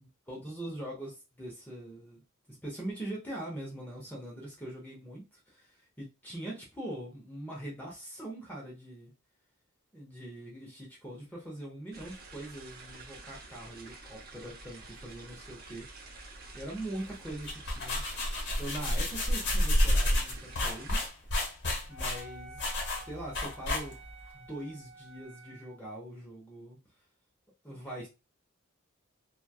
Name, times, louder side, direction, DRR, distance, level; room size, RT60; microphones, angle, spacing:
voice 1, 0.0-2.2 2.5-9.1 9.9-15.9 16.5-18.0 18.6-21.0 21.9-22.6 23.0-24.0 24.3-26.8 27.6-28.1, right 1 dB, 10° left, 0.7 m, -42 dB
sound 1, 11.9-21.1, right 3 dB, 45° right, 0.7 m, -49 dB
sound 2, 17.3-24.2, left 1 dB, 55° left, 1.0 m, -30 dB
Wind instrument woodwind instrument, 21.9-25.8, right 2 dB, 75° right, 0.9 m, -51 dB
3.1 x 2.3 x 2.2 m
head